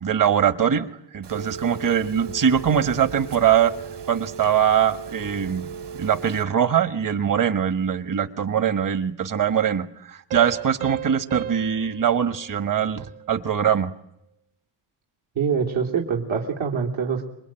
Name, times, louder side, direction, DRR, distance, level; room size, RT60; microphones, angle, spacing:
voice 1, 0.0-3.7 4.1-5.7 6.0-13.9, right 8 dB, 40° right, 11 dB, 1.5 m, -22 dB
Telephone, 1.2-6.4, right 6 dB, 55° right, 3.0 m, -37 dB
sound 1, 10.3-13.6, right 11 dB, 90° right, 1.6 m, -36 dB
voice 2, 15.4-17.2, right 6 dB, 75° right, 0 dB, 3.5 m, -24 dB
27.0 x 23.0 x 9.0 m, 0.79 s
cardioid pair, 155°, 49 cm